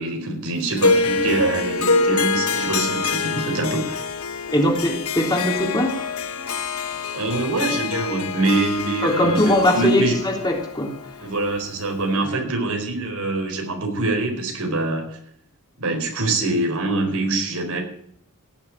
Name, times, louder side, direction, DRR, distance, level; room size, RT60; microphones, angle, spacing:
voice 1, 0.0-4.0 7.1-10.2 11.2-15.2 15.8-17.8, right 2 dB, 85° right, 3 dB, 4.4 m, -24 dB
Harp, 0.8-12.1, left 4 dB, 90° left, 1.2 m, -25 dB
voice 2, 4.5-6.5 9.0-11.2 12.3-12.5, left 1 dB, 20° left, 0 dB, 3.4 m, -21 dB
17.0 x 7.3 x 9.0 m, 0.68 s
head